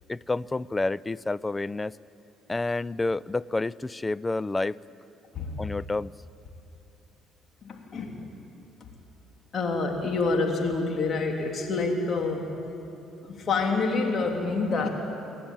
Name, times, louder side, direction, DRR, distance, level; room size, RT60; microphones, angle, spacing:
voice 1, 0.1-2.0 2.5-4.8 5.6-6.1, left 2 dB, 20° left, 21 dB, 0.4 m, -29 dB
voice 2, 7.6-8.3 9.5-12.5 13.2-14.9, left 3 dB, 45° left, 2 dB, 3.2 m, -27 dB
27.5 x 11.0 x 8.9 m, 2.9 s
supercardioid pair, 65°, 0 cm